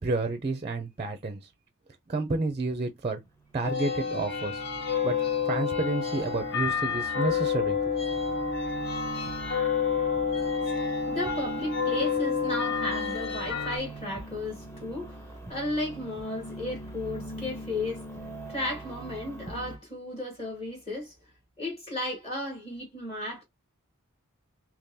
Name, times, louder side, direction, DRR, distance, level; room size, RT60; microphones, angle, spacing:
voice 1, 0.0-1.5 2.1-3.2 3.5-4.6 5.0-5.2 5.4-7.9, right 3 dB, 25° right, 0.4 m, -30 dB
sound 1, 3.3-19.8, right 1 dB, 10° left, 0.8 m, -43 dB
sound 2, 3.6-13.8, left 6 dB, 50° left, 0.7 m, -29 dB
voice 2, 10.6-18.0 18.5-21.1 21.6-23.4, left 1 dB, 30° left, 1.3 m, -34 dB
3.7 x 2.9 x 2.7 m
head